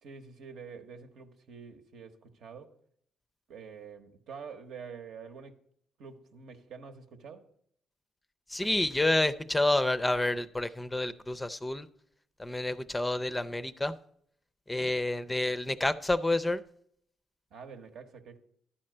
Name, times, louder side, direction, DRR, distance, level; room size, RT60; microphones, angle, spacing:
voice 1, 0.0-2.7 3.5-5.6 6.0-7.5 17.5-18.4, right 6 dB, 75° right, 1.0 m, -47 dB
voice 2, 8.5-11.9 12.4-13.9 14.7-16.6, left 2 dB, 10° left, 0.4 m, -29 dB
12.0 x 4.3 x 7.7 m
cardioid pair, 95°, 0 cm